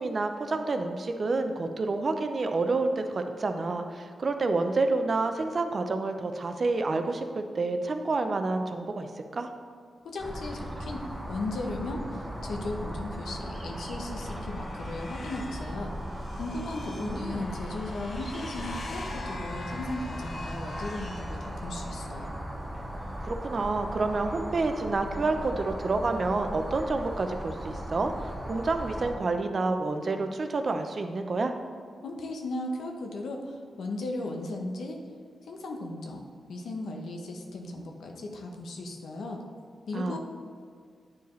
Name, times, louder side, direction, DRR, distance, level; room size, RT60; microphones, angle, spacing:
voice 1, 0.0-9.5 17.0-17.5 23.2-31.5 39.9-40.2, right 3 dB, 45° right, 7 dB, 0.5 m, -29 dB
voice 2, 10.0-11.0 11.3-15.9 16.4-22.3 32.0-35.0 35.5-39.4 39.9-40.2, left 2 dB, 90° left, 2 dB, 0.8 m, -36 dB
sound 1, 10.2-29.2, equal, 15° right, 0.9 m, -37 dB
sound 2, 13.8-22.1, left 2 dB, 55° left, 0.7 m, -44 dB
9.6 x 4.7 x 3.1 m, 2.1 s
cardioid pair, 95°, 0 cm